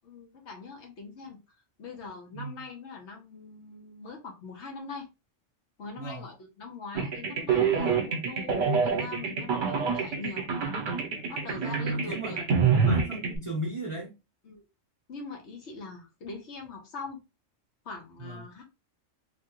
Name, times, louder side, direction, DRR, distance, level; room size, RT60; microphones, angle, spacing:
voice 1, 0.0-1.4 1.8-5.1 5.8-10.5 11.3-12.4 14.4-14.6 15.1-17.2 17.8-18.6, left 4 dB, 65° left, 1.2 m, -42 dB
voice 2, 2.3-2.6 6.0-6.3 11.6-14.1 18.2-18.5, right 2 dB, 30° right, 0.7 m, -35 dB
sound 1, 7.0-13.4, right 5 dB, 70° right, 1.1 m, -27 dB
3.2 x 2.3 x 2.9 m
omnidirectional pair, 1.3 m